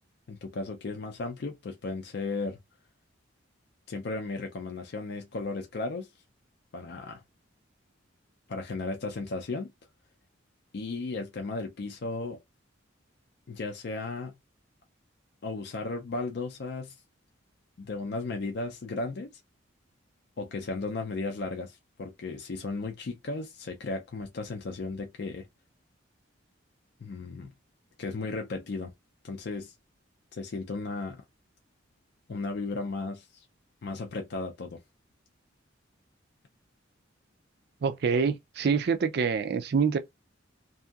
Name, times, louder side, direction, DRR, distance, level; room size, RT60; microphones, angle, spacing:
voice 1, 0.3-2.6 3.9-6.1 6.7-7.2 8.5-9.7 10.7-12.4 13.5-14.3 15.4-17.0 17.8-19.3 20.4-25.5 27.0-27.5 28.0-28.9 29.2-29.7 30.3-31.2 32.3-33.4 33.8-34.8, left 3 dB, 55° left, 0.4 m, -35 dB
voice 2, 37.8-40.0, right 5 dB, 55° right, 0.4 m, -26 dB
2.7 x 2.6 x 2.3 m
head